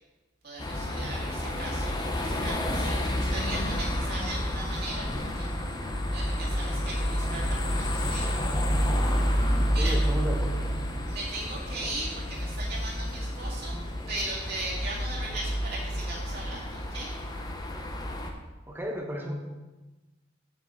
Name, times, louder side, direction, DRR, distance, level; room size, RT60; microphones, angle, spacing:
voice 1, 0.4-5.5 6.1-8.4 9.5-10.0 11.1-13.8 14.1-17.1, right 2 dB, 60° right, -6 dB, 2.1 m, -38 dB
sound 1, 0.6-18.3, equal, 20° left, 0.7 m, -29 dB
voice 2, 9.8-10.6 18.7-19.3, equal, 10° right, 1 dB, 1.1 m, -33 dB
7.9 x 7.4 x 3.8 m, 1.1 s
head